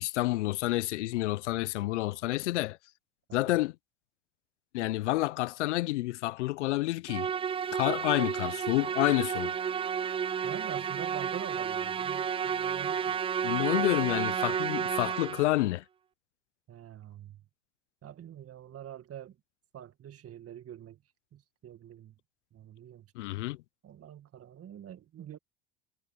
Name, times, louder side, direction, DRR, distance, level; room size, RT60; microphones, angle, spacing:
voice 1, 0.0-2.8 3.3-3.7 4.7-7.3 7.7-9.5 13.4-15.8 23.2-23.6, left 18 dB, 80° left, 0.8 m, -29 dB
Musical instrument, 7.1-15.6, right 7 dB, 15° right, 0.3 m, -31 dB
voice 2, 10.4-13.2 16.7-17.4 18.0-19.4 19.7-21.0 21.3-22.2 22.5-23.1 23.8-25.4, right 10 dB, 40° right, 1.9 m, -46 dB
hypercardioid pair, 75°, 35 cm